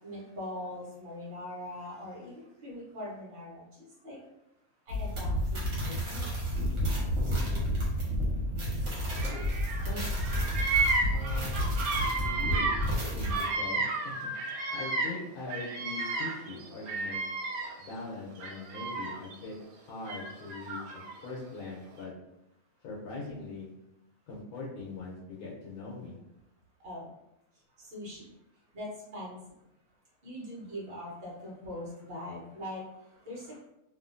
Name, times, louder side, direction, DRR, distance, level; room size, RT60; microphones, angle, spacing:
voice 1, 0.0-4.2 4.9-6.3 26.8-27.1 27.8-28.3 28.7-29.4 30.2-33.6, left 1 dB, 45° right, -5 dB, 1.0 m, -42 dB
sound 1, 4.9-13.4, equal, 65° right, 1.3 m, -30 dB
voice 2, 9.1-10.3 11.1-11.7 12.2-12.8 13.1-14.3 14.7-17.2 17.8-19.5 19.9-20.8 21.2-22.1 22.8-23.7 24.3-26.2, left 3 dB, 90° left, -4 dB, 1.2 m, -41 dB
Bird vocalization bird call bird song, 9.1-9.9 10.1-15.2 15.5-17.9 18.4-19.3 20.1-21.1, right 3 dB, 90° right, 1.0 m, -32 dB
2.7 x 2.5 x 2.5 m, 0.86 s
omnidirectional pair, 1.5 m